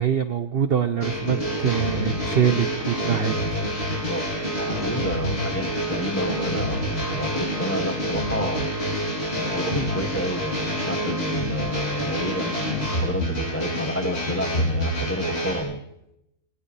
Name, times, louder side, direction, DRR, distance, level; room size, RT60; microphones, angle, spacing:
voice 1, 0.0-4.1, right 8 dB, 50° right, 9 dB, 0.8 m, -25 dB
sound 1, 1.0-15.6, equal, 30° left, 6.5 m, -27 dB
voice 2, 4.6-8.7 9.3-15.8, equal, 10° left, 4 dB, 1.4 m, -30 dB
20.0 x 19.0 x 3.3 m, 0.81 s
omnidirectional pair, 1.6 m